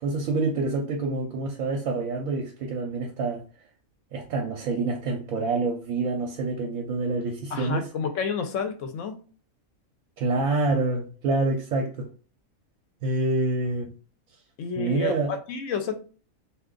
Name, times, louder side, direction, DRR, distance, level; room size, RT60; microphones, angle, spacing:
voice 1, 0.0-3.4 4.1-7.9 10.2-12.1 13.0-13.9 14.8-15.3, right 3 dB, 80° right, 1.1 m, -27 dB
voice 2, 7.5-9.1 14.6-16.0, left 6 dB, 70° left, 0.9 m, -30 dB
2.5 x 2.4 x 3.6 m
omnidirectional pair, 1.5 m